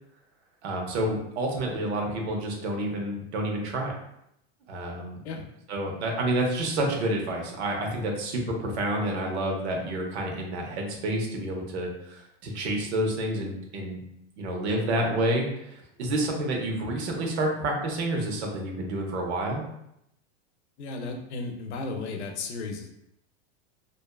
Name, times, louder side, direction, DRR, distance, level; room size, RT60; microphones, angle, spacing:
voice 1, 0.6-4.0 4.7-5.2 5.7-14.0 14.4-19.6, right 1 dB, 80° right, 1 dB, 0.8 m, -29 dB
voice 2, 20.8-22.9, left 3 dB, 90° left, 3 dB, 0.6 m, -34 dB
2.6 x 2.2 x 2.3 m, 0.78 s
supercardioid pair, 145°, 32 cm